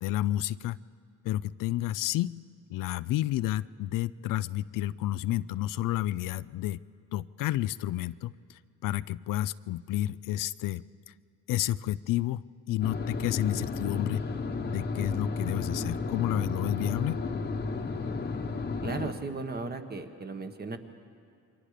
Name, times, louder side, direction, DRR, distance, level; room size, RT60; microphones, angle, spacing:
voice 1, 0.0-0.8 1.2-2.3 2.7-6.8 7.1-11.1 11.5-14.2 14.7-17.2, left 14 dB, 85° left, 16 dB, 0.5 m, -31 dB
sound 1, 12.8-19.1, left 3 dB, 30° left, 1.1 m, -33 dB
voice 2, 18.8-20.8, right 3 dB, 30° right, 6 dB, 1.4 m, -36 dB
28.5 x 23.5 x 5.0 m, 2.4 s
cardioid pair, 130°, 32 cm